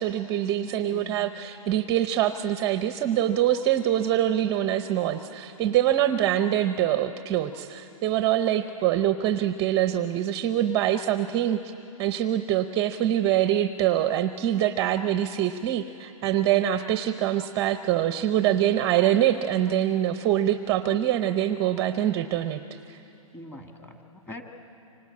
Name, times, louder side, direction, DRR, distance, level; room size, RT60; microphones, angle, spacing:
voice 1, 0.0-11.7 12.0-22.6 22.9-23.0, right 11 dB, 20° right, 10 dB, 0.6 m, -24 dB
voice 2, 0.6-1.4 23.3-24.4, left 1 dB, 10° left, 3 dB, 1.9 m, -43 dB
28.0 x 25.5 x 8.5 m, 2.8 s
hypercardioid pair, 150°, 18 cm